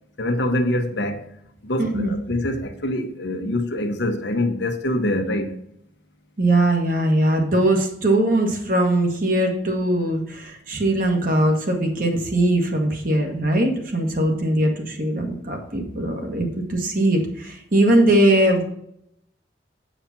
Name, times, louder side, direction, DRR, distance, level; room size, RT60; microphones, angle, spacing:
voice 1, 0.2-1.3 1.6-5.5, left 1 dB, 75° left, 1.1 m, -24 dB
voice 2, 1.8-2.1 6.4-18.6, right 1 dB, 50° right, 1.6 m, -20 dB
8.7 x 5.0 x 5.9 m
head